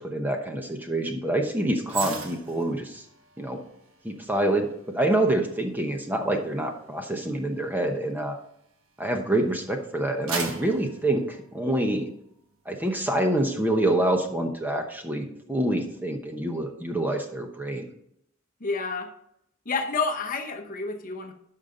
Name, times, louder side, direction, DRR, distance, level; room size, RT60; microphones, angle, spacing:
voice 1, 0.0-3.0 3.4-3.6 4.0-8.4 9.0-12.1 12.7-17.9, right 1 dB, 10° right, 4 dB, 0.9 m, -26 dB
sound 1, 1.9-9.3 9.7-12.1 12.5-12.7, right 4 dB, 70° right, 1.3 m, -40 dB
voice 2, 18.6-19.1 19.7-21.3, left 4 dB, 40° left, 6 dB, 0.9 m, -29 dB
12.0 x 5.7 x 3.8 m, 0.75 s
head